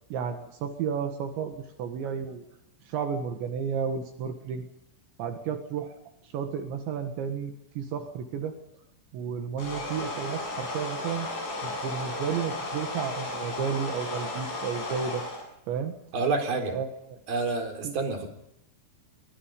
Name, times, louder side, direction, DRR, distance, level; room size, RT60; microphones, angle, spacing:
voice 1, 0.1-2.4 2.9-4.7 5.2-6.0 6.2-8.5 9.1-11.3 11.6-15.2 15.7-15.9 16.7-17.2 17.8-18.0, right 7 dB, 70° right, 6 dB, 3.8 m, -32 dB
sound 1, 9.6-15.4, left 2 dB, 55° left, 9.6 m, -34 dB
voice 2, 16.1-16.8 17.3-18.3, right 3 dB, 50° right, 6 dB, 5.4 m, -28 dB
27.5 x 24.0 x 5.3 m, 0.77 s
omnidirectional pair, 5.5 m